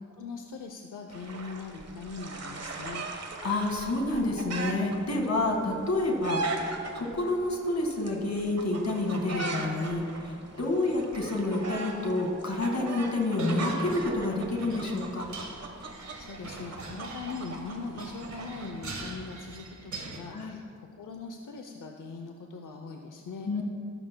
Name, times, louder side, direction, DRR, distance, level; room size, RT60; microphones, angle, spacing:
voice 1, 0.1-3.1 16.0-23.6, left 4 dB, 90° left, 3 dB, 0.7 m, -41 dB
sound 1, 1.1-18.7, right 3 dB, 60° right, 1.3 m, -39 dB
voice 2, 3.4-6.4 7.0-15.3 20.3-20.6 23.4-23.6, left 2 dB, 65° left, 1 dB, 1.9 m, -29 dB
sound 2, 13.3-20.2, right 3 dB, 75° right, 1.5 m, -42 dB
19.0 x 12.0 x 2.2 m, 2.4 s
wide cardioid pair, 125°, 30 cm